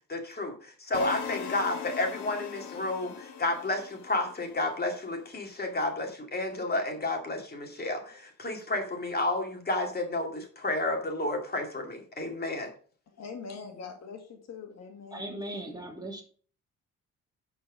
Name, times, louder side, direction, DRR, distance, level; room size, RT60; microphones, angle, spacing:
voice 1, 0.1-12.7, left 2 dB, 30° left, 3 dB, 2.3 m, -31 dB
sound 1, 0.9-5.0, left 7 dB, 90° left, 1.5 m, -40 dB
voice 2, 13.1-15.3, left 5 dB, 60° left, 4 dB, 2.0 m, -43 dB
voice 3, 15.1-16.2, right 1 dB, 15° right, 0 dB, 2.8 m, -38 dB
11.5 x 4.7 x 5.0 m, 0.43 s
cardioid pair, 90°, 30 cm